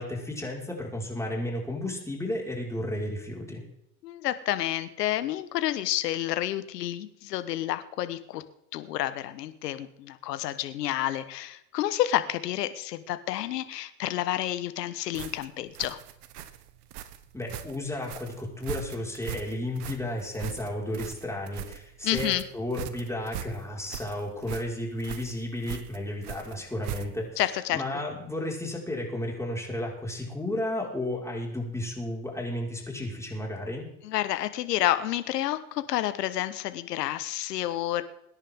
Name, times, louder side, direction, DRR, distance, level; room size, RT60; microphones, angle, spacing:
voice 1, 0.0-3.6 17.3-27.4 27.7-33.9, left 1 dB, 5° left, -2 dB, 5.5 m, -33 dB
voice 2, 4.0-8.4 8.7-16.0 22.0-22.4 27.4-27.8 34.0-38.0, left 13 dB, 80° left, 12 dB, 1.5 m, -29 dB
sound 1, 15.1-27.4, right 10 dB, 70° right, 1.5 m, -40 dB
23.0 x 10.5 x 3.8 m, 0.81 s
hypercardioid pair, 85°, 48 cm